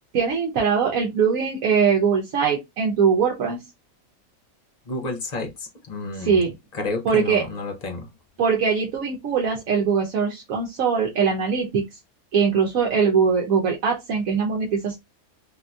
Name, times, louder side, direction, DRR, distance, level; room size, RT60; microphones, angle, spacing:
voice 1, 0.1-3.6 6.2-6.5 7.0-7.4 8.4-11.8 12.3-15.0, right 6 dB, 70° right, 1.1 m, -21 dB
voice 2, 4.9-6.4 6.7-8.1, left 3 dB, 45° left, 0.5 m, -30 dB
3.5 x 2.6 x 2.2 m
omnidirectional pair, 1.5 m